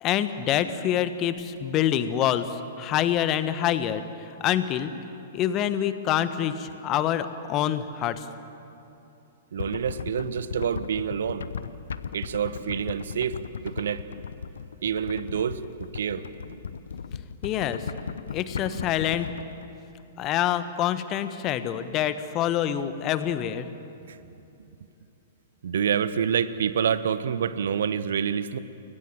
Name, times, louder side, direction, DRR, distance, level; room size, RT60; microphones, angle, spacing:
voice 1, 0.0-4.9 5.3-8.3 17.4-17.9 18.3-19.3 20.2-23.7, left 11 dB, 30° left, 12 dB, 1.3 m, -26 dB
voice 2, 9.5-11.5 12.1-13.4 13.6-14.0 14.8-16.3 18.7-19.1 24.1-24.2 25.6-28.6, right 8 dB, 60° right, 14 dB, 1.1 m, -27 dB
sound 1, 9.6-19.7, left 6 dB, 65° left, 0.9 m, -37 dB
29.5 x 22.0 x 7.7 m, 2.8 s
figure-of-eight pair, 110°, 0 cm